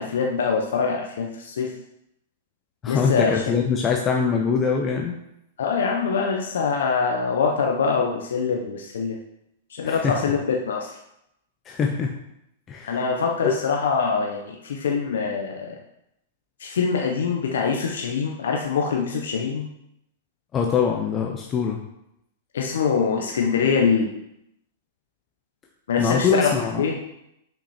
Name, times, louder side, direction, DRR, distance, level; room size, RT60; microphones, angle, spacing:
voice 1, 0.0-1.7 2.9-3.4 5.6-9.2 9.7-11.0 12.8-15.8 16.6-19.7 22.5-24.1 25.9-27.0, left 5 dB, 80° left, 1 dB, 0.9 m, -24 dB
voice 2, 2.8-5.1 9.8-10.2 11.7-12.1 12.7-13.0 13.4-13.5 20.5-21.8 26.0-26.8, left 6 dB, 25° left, 1 dB, 0.7 m, -23 dB
5.9 x 5.6 x 4.3 m, 0.82 s
hypercardioid pair, 135°, 0 cm